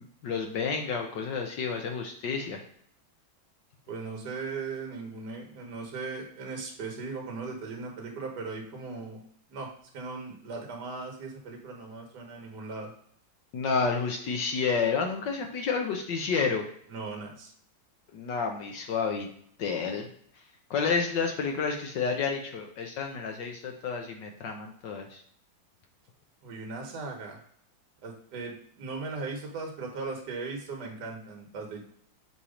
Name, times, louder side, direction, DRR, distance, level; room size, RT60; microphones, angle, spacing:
voice 1, 0.2-2.6 13.5-16.6 18.1-19.3 19.6-20.1 20.7-25.2, left 5 dB, 70° left, 3 dB, 1.4 m, -30 dB
voice 2, 3.9-9.2 9.5-12.9 16.9-17.5 26.4-27.4 28.0-31.8, right 4 dB, 60° right, 1 dB, 1.6 m, -38 dB
7.0 x 2.9 x 5.0 m, 0.63 s
omnidirectional pair, 2.1 m